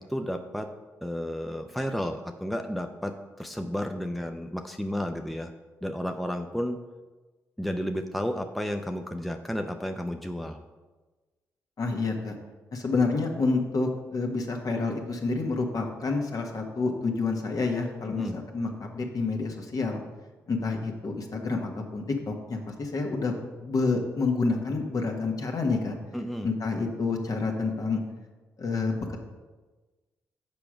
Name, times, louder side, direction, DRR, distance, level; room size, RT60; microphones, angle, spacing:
voice 1, 0.1-0.7 1.0-5.5 5.8-6.8 7.6-10.6 18.0-18.4 26.1-26.5, equal, ahead, 5 dB, 0.7 m, -32 dB
voice 2, 11.8-12.3 12.7-20.0 20.5-23.3 23.6-25.9 26.4-28.0 28.6-29.2, left 3 dB, 55° left, 2 dB, 1.5 m, -28 dB
6.9 x 5.0 x 6.0 m, 1.2 s
supercardioid pair, 45°, 7 cm